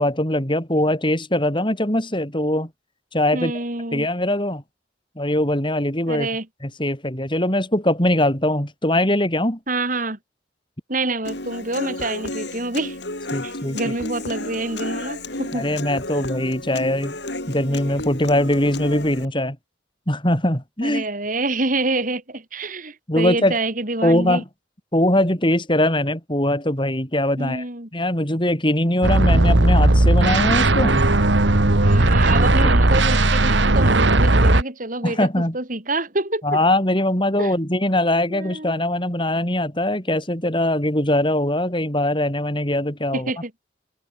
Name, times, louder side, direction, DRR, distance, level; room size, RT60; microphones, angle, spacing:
voice 1, 0.0-2.7 3.1-3.5 3.9-4.6 5.2-6.3 6.6-9.6 13.3-13.8 15.5-17.2 17.5-19.6 20.1-21.0 23.1-23.6 24.0-24.4 24.9-27.6 27.9-31.1 32.6-32.7 35.0-35.6 36.4-43.3, left 1 dB, 25° left, 6.5 m, -21 dB
voice 2, 3.3-4.1 6.1-6.5 9.7-10.2 10.9-13.0 13.4-15.7 20.8-24.4 27.4-27.9 31.8-36.4 37.4-37.5 38.3-38.8 43.1-43.5, right 2 dB, 45° right, 4.2 m, -27 dB
Human voice / Acoustic guitar, 11.2-19.3, left 2 dB, 65° left, 6.9 m, -32 dB
sound 1, 29.0-34.6, right 2 dB, 75° right, 2.0 m, -16 dB
head